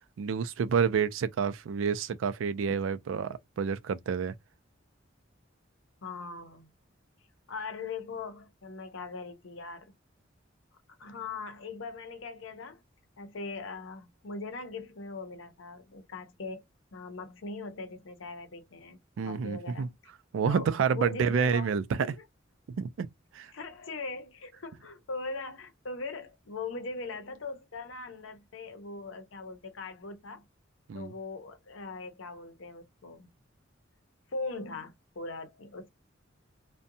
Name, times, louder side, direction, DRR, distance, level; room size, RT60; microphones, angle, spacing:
voice 1, 0.2-4.3 19.2-19.9 20.3-21.8 22.8-23.5 30.9-31.1, right 6 dB, 80° right, 0.3 m, -29 dB
voice 2, 6.0-6.7 7.5-9.9 11.0-12.8 13.2-16.6 16.9-19.0 19.3-19.9 20.5-22.2 23.5-30.4 30.9-33.3 34.3-35.9, left 3 dB, 90° left, 0.7 m, -40 dB
2.6 x 2.2 x 2.6 m
head